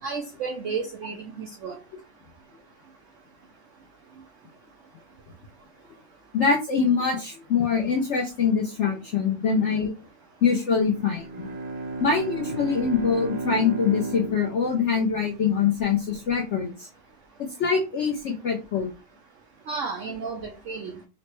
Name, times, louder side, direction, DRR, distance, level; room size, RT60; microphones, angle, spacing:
voice 1, 0.0-1.8 19.7-21.0, right 5 dB, 85° right, 3 dB, 0.6 m, -32 dB
voice 2, 6.3-9.9 10.4-11.5 12.0-16.9 17.4-18.9, left 6 dB, 70° left, 0 dB, 0.7 m, -24 dB
Bowed string instrument, 10.9-15.6, right 2 dB, 65° right, 1.0 m, -34 dB
4.1 x 2.1 x 3.0 m, 0.31 s
omnidirectional pair, 1.9 m